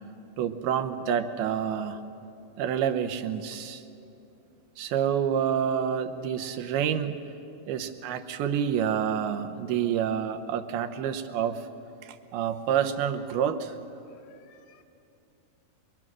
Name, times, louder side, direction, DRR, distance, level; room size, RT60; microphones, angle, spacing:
voice 1, 0.4-2.0 2.6-3.8 4.8-7.2 7.7-11.6 12.0-13.7, right 8 dB, 90° right, 7 dB, 2.9 m, -28 dB
voice 2, 14.1-14.8, left 8 dB, 85° left, 6 dB, 3.2 m, -61 dB
26.0 x 23.0 x 6.2 m, 2.7 s
omnidirectional pair, 4.3 m